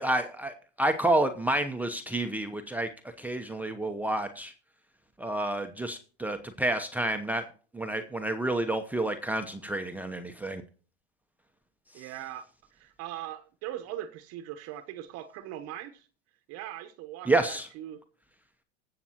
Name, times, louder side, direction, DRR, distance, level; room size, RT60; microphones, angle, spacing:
voice 1, 0.0-2.9 3.2-4.5 5.2-7.4 7.7-10.6 17.3-17.7, right 2 dB, 5° right, 0.8 m, -29 dB
voice 2, 11.9-16.1 16.5-18.0, right 12 dB, 50° right, 1.0 m, -40 dB
21.0 x 7.6 x 2.9 m
hypercardioid pair, 105°, 32 cm